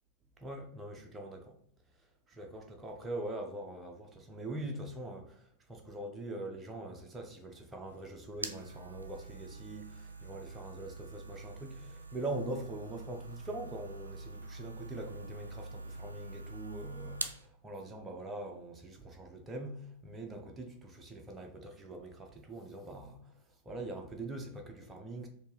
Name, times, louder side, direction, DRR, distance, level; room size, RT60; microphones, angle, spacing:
voice 1, 0.4-1.6 2.0-9.9 10.2-25.3, right 2 dB, 15° right, 0.7 m, -43 dB
sound 1, 7.9-17.5, right 2 dB, 80° right, 0.3 m, -45 dB
4.4 x 2.8 x 3.1 m
figure-of-eight pair, 90°, 0 cm